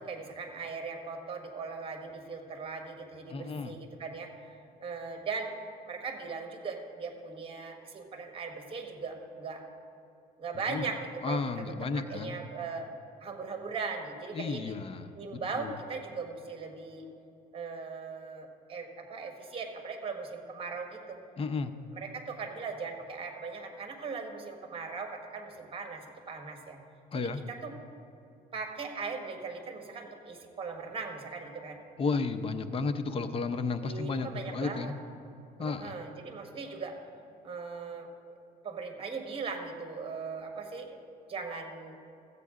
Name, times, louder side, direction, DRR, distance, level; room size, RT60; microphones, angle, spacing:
voice 1, 0.0-4.5 4.8-5.5 5.9-9.6 10.4-11.0 11.2-11.4 11.9-12.9 13.2-14.8 15.1-17.1 17.5-21.2 21.9-26.8 27.1-27.7 28.5-31.8 33.8-34.9 35.6-37.0 37.4-38.1 38.6-41.0 41.3-42.0, right 4 dB, 35° right, 4 dB, 1.4 m, -39 dB
voice 2, 3.3-3.8 10.7-10.9 11.2-12.4 14.3-15.7 21.4-21.8 27.1-27.4 32.0-34.9 35.6-35.9, left 4 dB, 35° left, 10 dB, 0.6 m, -33 dB
14.0 x 8.3 x 3.7 m, 2.7 s
cardioid pair, 110°, 17 cm